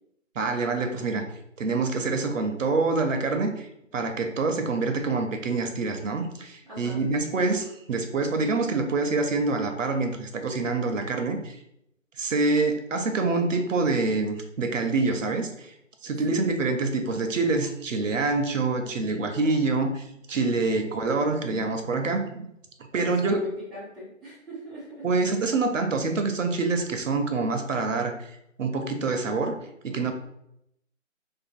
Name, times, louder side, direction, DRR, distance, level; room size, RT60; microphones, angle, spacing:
voice 1, 0.4-1.2 1.6-3.7 3.9-11.6 12.2-15.7 16.0-22.5 22.9-23.4 25.0-29.6 29.8-30.1, right 3 dB, 70° right, 6 dB, 0.6 m, -26 dB
voice 2, 6.6-7.0 16.2-16.6 18.8-19.5 20.7-21.0 22.9-25.1, equal, ahead, -9 dB, 0.4 m, -41 dB
2.5 x 2.4 x 2.4 m, 0.77 s
figure-of-eight pair, 155°, 40 cm